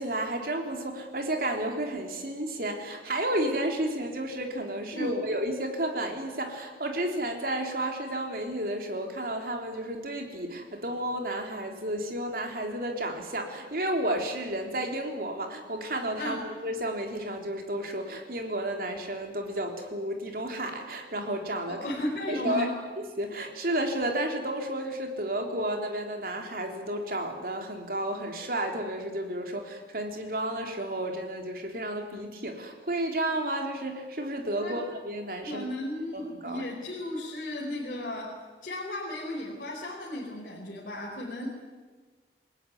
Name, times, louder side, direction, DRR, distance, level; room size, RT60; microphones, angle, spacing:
voice 1, 0.0-21.9 22.3-22.7 23.2-35.7 36.1-36.7, right 1 dB, 55° right, 4 dB, 3.6 m, -32 dB
voice 2, 21.7-22.7 34.6-34.8 35.4-38.3 38.6-41.5, left 1 dB, 50° left, -3 dB, 4.5 m, -34 dB
28.5 x 18.5 x 9.6 m, 1.4 s
head